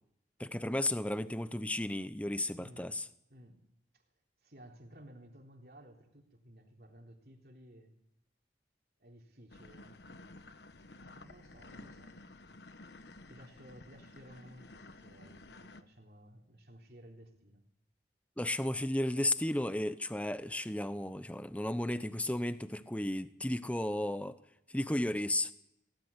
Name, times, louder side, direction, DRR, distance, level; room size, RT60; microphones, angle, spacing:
voice 1, 0.4-3.0 18.4-24.4 24.7-25.5, left 1 dB, 10° left, 12 dB, 0.8 m, -34 dB
voice 2, 2.6-2.9 3.3-3.7 3.9-4.0 4.4-7.9 9.0-10.0 11.0-12.2 13.3-17.6, equal, 60° right, 2 dB, 3.6 m, -56 dB
sound 1, 9.5-15.8, left 2 dB, 75° left, 1.2 m, -53 dB
19.0 x 18.5 x 9.8 m, 0.82 s
head